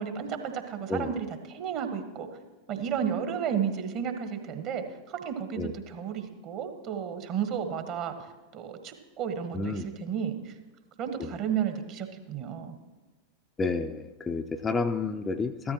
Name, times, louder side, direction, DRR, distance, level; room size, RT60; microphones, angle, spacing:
voice 1, 0.0-2.3 2.7-10.5 11.0-12.8, right 8 dB, 40° right, 7 dB, 1.3 m, -33 dB
voice 2, 9.5-9.9 11.2-11.3 13.6-15.7, left 3 dB, 15° left, 6 dB, 0.5 m, -30 dB
14.0 x 12.5 x 3.0 m, 1.2 s
figure-of-eight pair, 90°, 0 cm